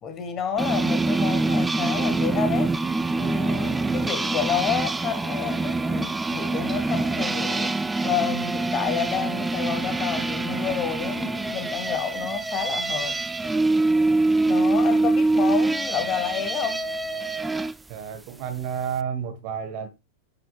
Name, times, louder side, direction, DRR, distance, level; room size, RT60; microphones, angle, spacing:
voice 1, 0.0-2.7 3.2-13.2 14.5-16.8, left 8 dB, 30° left, 1.7 m, -29 dB
sound 1, 0.6-17.7, right 2 dB, 10° right, 0.4 m, -25 dB
voice 2, 17.9-19.9, right 7 dB, 45° right, 1.4 m, -31 dB
9.7 x 6.0 x 2.4 m
figure-of-eight pair, 90°, 0 cm